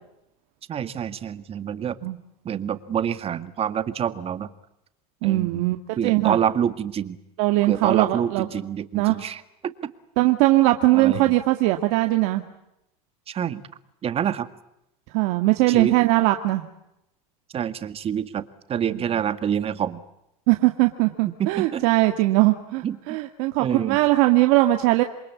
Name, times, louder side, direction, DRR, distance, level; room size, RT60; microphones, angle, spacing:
voice 1, 0.7-2.0 2.4-4.5 5.2-5.7 6.0-7.2 7.6-9.9 10.9-11.3 13.3-13.6 14.0-14.5 15.7-15.9 17.5-20.0 21.4-21.8 22.8-23.2 23.6-24.0, right 9 dB, 30° right, 12 dB, 2.0 m, -27 dB
voice 2, 5.2-5.8 6.0-6.4 7.4-8.5 8.9-9.2 10.2-12.4 15.1-16.6 20.5-25.0, right 18 dB, 65° right, 6 dB, 2.0 m, -20 dB
28.0 x 23.0 x 8.5 m, 0.86 s
supercardioid pair, 115°, 19 cm